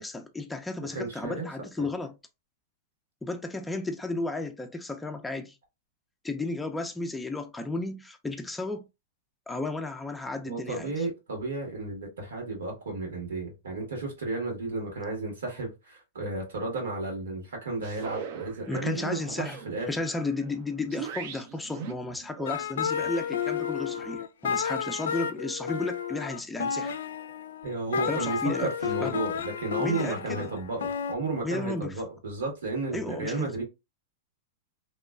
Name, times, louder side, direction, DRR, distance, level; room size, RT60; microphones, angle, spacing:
voice 1, 0.0-2.2 3.2-5.6 6.2-8.8 9.5-11.1 18.7-19.6 19.9-26.9 28.0-28.7 29.0-29.2 29.8-30.4 31.4-32.0 32.9-33.5, left 2 dB, 5° left, 0.3 m, -33 dB
voice 2, 0.9-1.4 1.8-1.9 10.5-19.9 27.6-33.6, right 3 dB, 90° right, 1.6 m, -33 dB
sound 1, 17.8-24.2, right 7 dB, 55° right, 0.5 m, -42 dB
sound 2, 22.5-31.1, left 7 dB, 85° left, 0.3 m, -32 dB
2.9 x 2.2 x 2.3 m
hypercardioid pair, 130°, 0 cm